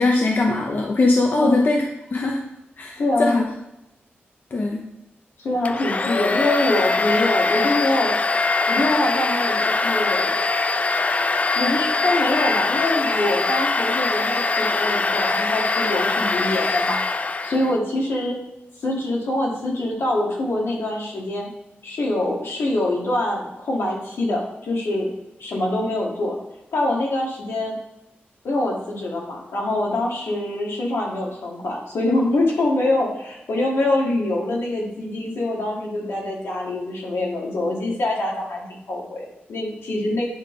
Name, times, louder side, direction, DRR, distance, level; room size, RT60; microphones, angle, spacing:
voice 1, 0.0-2.4 2.8-3.4 4.5-4.8, left 2 dB, 50° left, 0 dB, 0.9 m, -21 dB
voice 2, 3.0-3.4 5.4-8.1 8.7-10.3 11.6-17.0 17.4-18.4 18.8-21.5 21.8-25.1 25.4-26.4 26.7-27.8 28.4-40.2, left 1 dB, 85° left, -2 dB, 2.0 m, -24 dB
Domestic sounds home sounds, 5.7-17.8, left 3 dB, 35° left, 0.4 m, -22 dB
10.0 x 3.7 x 3.8 m, 0.89 s
cardioid pair, 75°, 4 cm